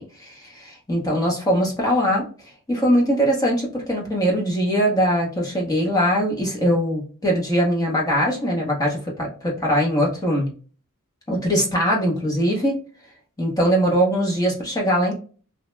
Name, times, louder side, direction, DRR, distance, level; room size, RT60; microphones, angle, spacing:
voice 1, 0.0-2.3 2.7-10.5 11.3-12.8 13.4-15.1, equal, 15° left, -2 dB, 0.8 m, -21 dB
2.9 x 2.1 x 3.2 m, 0.39 s
head